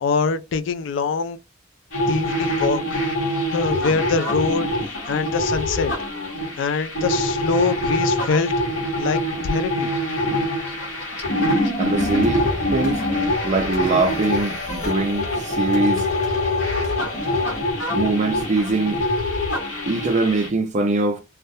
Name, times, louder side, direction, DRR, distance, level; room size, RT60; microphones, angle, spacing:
voice 1, 0.0-1.4 2.1-3.0 3.5-4.7 5.1-5.9 6.6-8.5 9.0-9.9, left 5 dB, 65° left, 0.3 m, -23 dB
sound 1, 1.9-20.5, left 1 dB, 85° left, 1.0 m, -24 dB
voice 2, 11.8-13.0 13.4-16.1 17.9-19.0 19.9-21.2, right 2 dB, 35° right, 0.4 m, -22 dB
sound 2, 11.9-17.6, left 2 dB, 40° left, 0.8 m, -32 dB
2.3 x 2.1 x 2.6 m
head